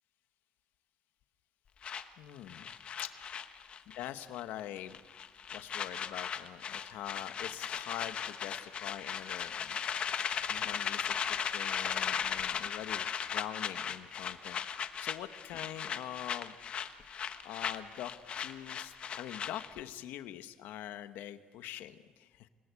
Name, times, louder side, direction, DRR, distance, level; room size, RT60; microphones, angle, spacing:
sound 1, 1.8-4.1 4.3-4.6 4.9-19.8, left 7 dB, 35° left, 1.1 m, -37 dB
voice 1, 2.2-2.7 3.0-3.1 4.0-5.0 5.5-9.8 10.5-16.5 17.4-22.5, left 12 dB, 75° left, 10 dB, 1.0 m, -44 dB
28.0 x 19.5 x 8.2 m, 1.3 s
cardioid pair, 175°, 3 cm